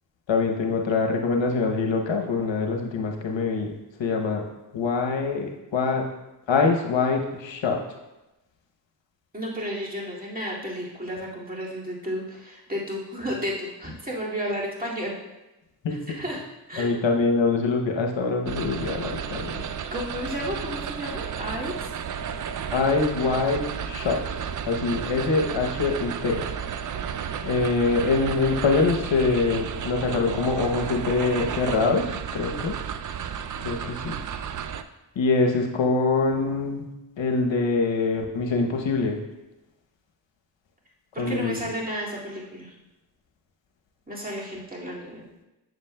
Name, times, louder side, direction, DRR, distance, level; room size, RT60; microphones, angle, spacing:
voice 1, 0.3-3.7 4.0-4.4 4.7-6.0 6.5-7.8 15.8-16.2 16.8-19.6 22.7-24.2 24.7-26.4 27.4-32.7 33.6-34.2 35.2-36.9 37.2-39.2 41.2-41.6, left 4 dB, 70° left, 2 dB, 0.9 m, -24 dB
voice 2, 9.3-15.1 16.2-16.4 16.7-17.0 19.9-21.9 41.1-42.7 44.1-45.2, equal, 20° right, -5 dB, 2.1 m, -32 dB
sound 1, 18.5-34.8, right 7 dB, 45° right, 0.4 m, -32 dB
7.8 x 7.0 x 2.2 m, 0.99 s
cardioid pair, 40°, 47 cm